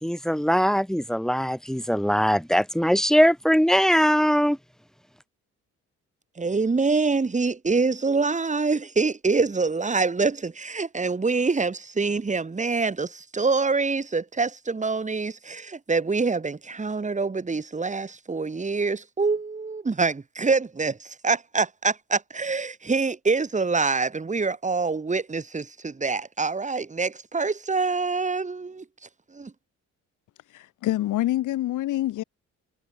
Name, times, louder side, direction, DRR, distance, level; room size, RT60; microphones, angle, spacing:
voice 1, 0.0-4.6, equal, ahead, 1.7 m, -21 dB
voice 2, 6.4-28.8 29.3-29.5, right 4 dB, 25° right, 3.1 m, -25 dB
voice 3, 30.5-32.2, left 15 dB, 85° left, 2.1 m, -26 dB
cardioid pair, 90°, 30 cm